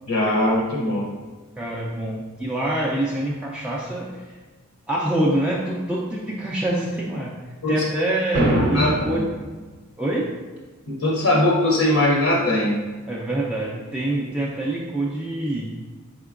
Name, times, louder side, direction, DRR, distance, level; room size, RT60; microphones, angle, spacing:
voice 1, 0.1-1.1 7.6-7.7 8.7-9.2 10.9-12.8, left 1 dB, 70° left, -2 dB, 0.6 m, -20 dB
voice 2, 1.6-4.3 4.9-7.3 7.7-9.3 10.0-10.3 13.1-15.7, right 1 dB, 5° right, -6 dB, 0.3 m, -25 dB
sound 1, 8.3-9.4, right 1 dB, 55° right, 0.6 m, -22 dB
4.3 x 3.8 x 2.4 m, 1.3 s
head